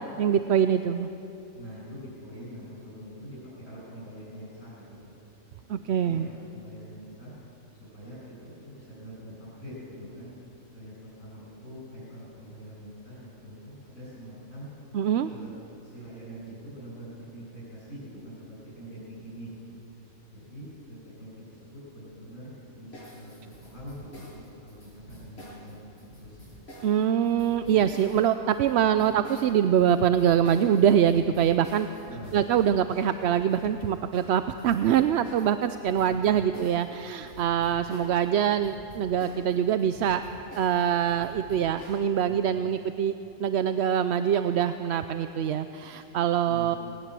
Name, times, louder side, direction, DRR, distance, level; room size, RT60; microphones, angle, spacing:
voice 1, 0.2-1.1 5.7-6.3 14.9-15.3 26.8-31.9 32.3-40.2 40.6-43.1 43.4-46.8, right 9 dB, 60° right, 10 dB, 0.8 m, -24 dB
voice 2, 1.5-5.1 5.7-7.3 7.9-10.3 10.7-10.9 11.2-14.7 15.3-15.5 15.8-19.8 20.3-26.5 28.9-29.1 32.0-32.4 36.0-36.5 42.3-42.7 46.4-46.8, equal, 80° left, -7 dB, 6.5 m, -44 dB
sound 1, 22.9-38.3 38.5-42.0, equal, 50° left, 6.9 m, -48 dB
19.5 x 19.0 x 7.6 m, 2.9 s
omnidirectional pair, 1.4 m